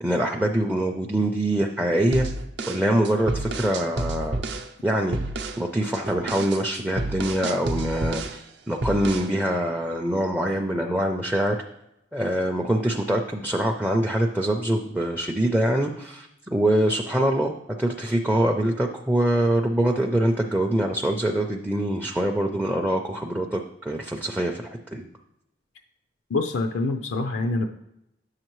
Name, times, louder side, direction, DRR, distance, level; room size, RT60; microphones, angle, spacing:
voice 1, 0.0-2.3 2.7-4.4 4.8-5.2 5.6-11.6 12.1-24.6 24.9-25.0, right 1 dB, 5° right, 1 dB, 0.4 m, -24 dB
sound 1, 2.1-4.7 5.1-5.6 5.9-8.4 8.8-9.3, right 2 dB, 65° right, 0.6 m, -30 dB
voice 2, 26.3-27.7, left 3 dB, 90° left, 5 dB, 0.5 m, -25 dB
9.1 x 6.5 x 3.0 m, 0.84 s
head